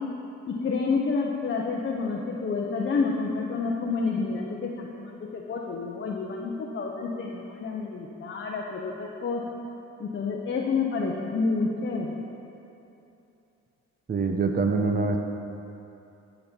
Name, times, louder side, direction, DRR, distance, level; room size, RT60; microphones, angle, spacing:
voice 1, 0.5-9.4 10.0-12.1, left 4 dB, 40° left, -1 dB, 0.9 m, -29 dB
voice 2, 14.1-15.2, right 4 dB, 30° right, 4 dB, 0.9 m, -24 dB
14.0 x 5.4 x 4.5 m, 2.8 s
cardioid pair, 90°, 30 cm